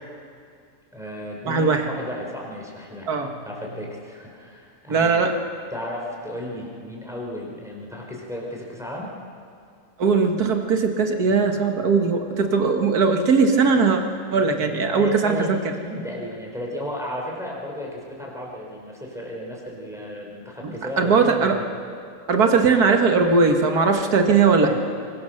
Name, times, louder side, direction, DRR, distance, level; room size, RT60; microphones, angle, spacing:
voice 1, 0.9-3.1 3.4-5.2 5.7-9.1 14.9-15.5 15.8-21.6 24.6-24.8, left 1 dB, ahead, -2 dB, 4.2 m, -34 dB
voice 2, 1.5-1.9 3.1-3.3 4.9-5.4 10.0-14.0 14.3-15.6 20.6-21.6 22.3-24.8, right 4 dB, 80° right, 4 dB, 2.1 m, -19 dB
24.0 x 20.5 x 6.6 m, 2.3 s
omnidirectional pair, 1.6 m